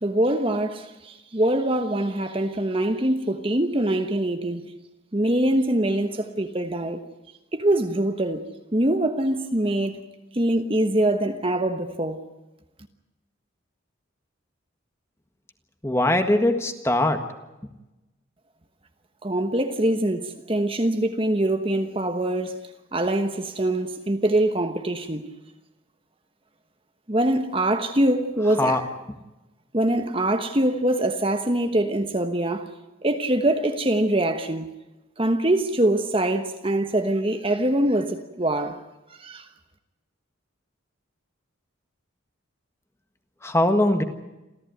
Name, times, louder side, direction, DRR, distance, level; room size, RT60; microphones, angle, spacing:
voice 1, 0.0-4.7 5.1-7.0 7.5-8.4 8.7-10.0 10.3-12.2 19.2-22.6 22.9-25.3 27.1-28.8 29.7-32.7 33.0-34.7 35.2-38.8 39.2-39.5, right 1 dB, 25° right, 1.2 m, -23 dB
voice 2, 15.8-17.2 28.6-28.8 43.4-44.0, left 1 dB, 15° left, 1.6 m, -21 dB
28.0 x 14.5 x 9.3 m
head